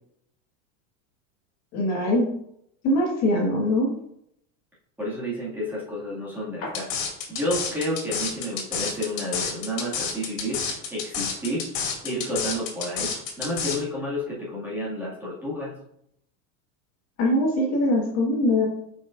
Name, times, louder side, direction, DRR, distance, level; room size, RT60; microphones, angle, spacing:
voice 1, 1.7-2.3 2.8-3.9 17.2-18.6, left 1 dB, 40° left, -2 dB, 1.7 m, -22 dB
voice 2, 5.0-6.9 7.3-11.6 12.0-15.7, equal, 5° right, -8 dB, 2.0 m, -30 dB
sound 1, 6.7-13.8, left 6 dB, 75° left, 2.2 m, -29 dB
8.4 x 5.4 x 2.5 m, 0.76 s
supercardioid pair, 160°, 39 cm